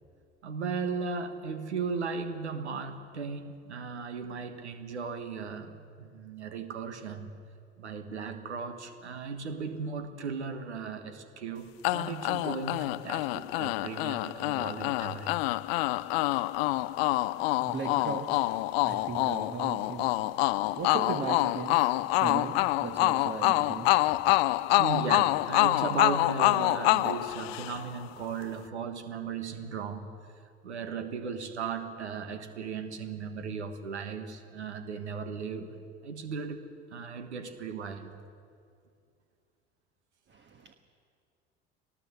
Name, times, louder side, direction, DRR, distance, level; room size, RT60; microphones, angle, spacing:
voice 1, 0.4-7.3 7.8-15.4 24.7-30.1 30.6-35.8 36.0-36.6 36.9-38.2, right 5 dB, 80° right, 9 dB, 1.4 m, -36 dB
sound 1, 11.8-28.0, left 19 dB, 65° left, 0.6 m, -27 dB
voice 2, 17.3-24.4 40.3-40.7, right 5 dB, 35° right, 5 dB, 1.5 m, -38 dB
21.5 x 19.0 x 7.9 m, 2.3 s
figure-of-eight pair, 65°, 33 cm